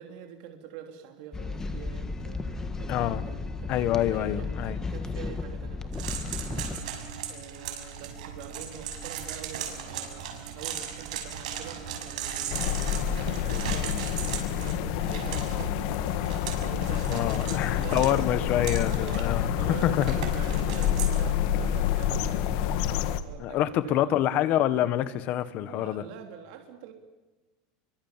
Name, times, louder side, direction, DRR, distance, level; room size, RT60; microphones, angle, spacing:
voice 1, 0.0-3.8 4.1-12.9 13.2-18.3 18.7-24.3 25.6-26.9, right 9 dB, 65° right, 4 dB, 3.4 m, -45 dB
sound 1, 1.3-6.8, left 3 dB, 15° left, 1.6 m, -34 dB
voice 2, 2.9-3.2 3.7-4.8 17.0-20.2 23.4-26.0, left 12 dB, 45° left, 14 dB, 1.6 m, -26 dB
sound 2, 5.9-21.2, right 8 dB, 90° right, 6.3 m, -37 dB
sound 3, 12.5-23.2, left 10 dB, 60° left, 1.8 m, -28 dB
29.5 x 24.0 x 7.6 m, 1.1 s
supercardioid pair, 150°, 4 cm